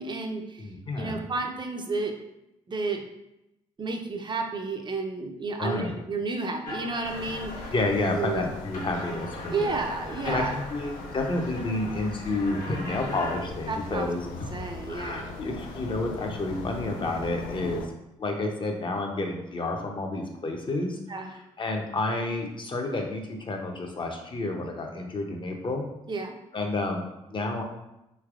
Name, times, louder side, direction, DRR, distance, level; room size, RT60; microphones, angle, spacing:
voice 1, 0.0-0.7 1.0-2.2 2.7-3.1 3.8-7.7 8.1-8.5 9.5-10.6 13.7-14.1 14.5-15.3 21.1-21.3 26.1-26.3, right 3 dB, 35° right, 3 dB, 0.5 m, -31 dB
voice 2, 0.6-1.2 5.6-5.9 7.7-9.8 10.2-14.3 14.5-14.6 14.9-17.8 18.2-21.0 21.3-25.9 26.5-27.6, left 2 dB, 35° left, 2 dB, 0.6 m, -30 dB
sound 1, 6.6-8.1 8.5-13.3, left 1 dB, 65° left, 1.1 m, -41 dB
sound 2, 7.0-17.9, left 3 dB, 80° left, 0.4 m, -40 dB
3.3 x 2.9 x 2.4 m, 0.90 s
supercardioid pair, 55°, 14 cm